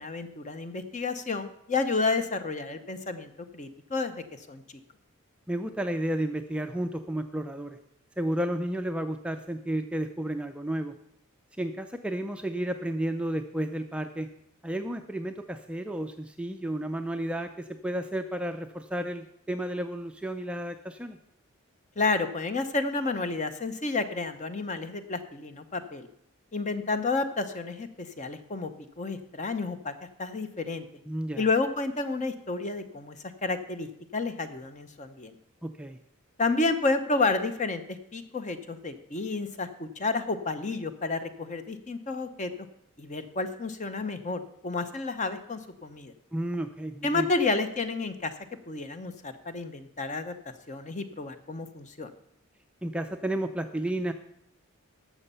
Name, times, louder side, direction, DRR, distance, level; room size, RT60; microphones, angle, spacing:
voice 1, 0.0-4.6 22.0-26.1 26.5-28.7 29.0-29.9 30.2-30.8 31.4-33.2 33.4-33.9 34.1-35.3 36.4-42.5 43.0-46.1 47.0-48.3 48.7-50.3 50.7-52.1, left 3 dB, 35° left, 10 dB, 0.8 m, -30 dB
voice 2, 5.5-7.8 8.2-10.9 11.6-14.3 14.6-21.2 31.1-31.4 35.6-36.0 46.3-47.3 52.8-54.1, right 1 dB, 5° right, 6 dB, 0.4 m, -32 dB
12.0 x 7.3 x 5.6 m, 0.75 s
head